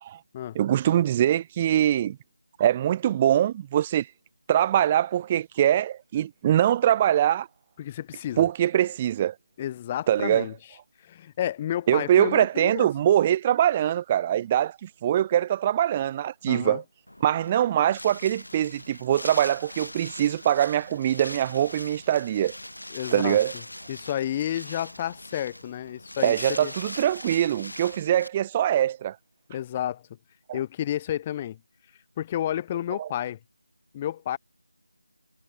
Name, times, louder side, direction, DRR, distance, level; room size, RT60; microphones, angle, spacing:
voice 1, 0.5-2.2 2.6-4.1 4.5-7.5 8.4-9.3 10.1-10.5 11.9-16.8 17.2-22.6 23.1-23.5 26.2-29.2 30.5-30.6 32.9-33.1, right 11 dB, 15° right, 0.9 m, -23 dB
voice 2, 7.8-8.5 9.6-10.5 11.0-12.9 16.4-16.8 22.9-23.4 23.9-26.7 29.5-30.0 30.5-31.6 32.2-33.4 33.9-34.4, left 11 dB, 15° left, 0.8 m, -31 dB
Wind, 17.1-28.3, left 1 dB, 75° left, 3.6 m, -41 dB
figure-of-eight pair, 165°, 0 cm